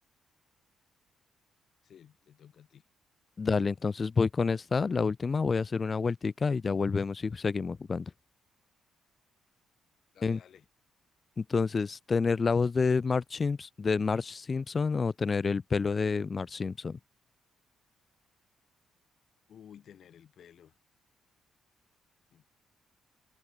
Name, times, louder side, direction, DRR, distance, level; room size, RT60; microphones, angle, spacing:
voice 1, 1.8-2.8 10.1-10.7 19.5-20.8 22.3-22.5, left 9 dB, 60° left, 4.8 m, -54 dB
voice 2, 3.4-8.1 10.2-10.4 11.4-17.0, left 4 dB, 35° left, 0.6 m, -28 dB
cardioid pair, 90°, 0 cm